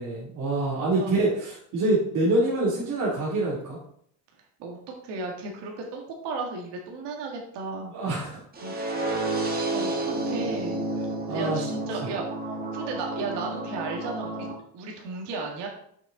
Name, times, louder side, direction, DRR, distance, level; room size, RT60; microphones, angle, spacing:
voice 1, 0.0-3.8 7.9-8.4 11.3-11.6, right 2 dB, 40° right, -6 dB, 2.1 m, -25 dB
voice 2, 5.0-7.9 8.6-8.9 9.3-10.0 10.3-10.9 11.3-12.2 12.7-14.5 14.7-15.7, right 3 dB, 60° right, 0 dB, 1.8 m, -34 dB
sound 1, 8.5-14.5, right 2 dB, 20° right, 1.3 m, -30 dB
6.5 x 6.2 x 3.8 m, 0.67 s
cardioid pair, 135°, 46 cm